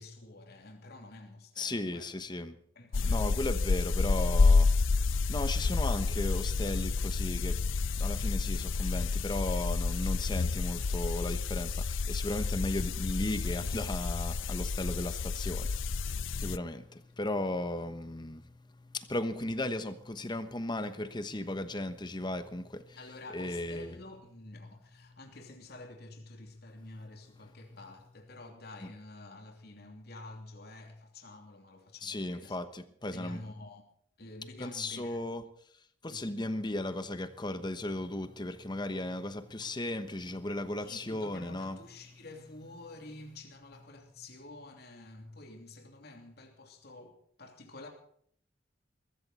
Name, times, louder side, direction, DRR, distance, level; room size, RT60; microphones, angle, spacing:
voice 1, 0.0-2.2 2.7-3.5 23.0-32.6 33.1-33.8 34.2-35.2 36.1-36.4 40.8-47.9, left 2 dB, 55° left, 3.0 m, -49 dB
voice 2, 1.6-2.6 3.0-23.0 23.3-24.0 32.0-33.4 34.6-35.4 36.0-41.8, left 1 dB, 25° left, 1.1 m, -36 dB
sound 1, 2.9-16.6, left 4 dB, 85° left, 0.6 m, -29 dB
21.5 x 14.5 x 4.2 m
head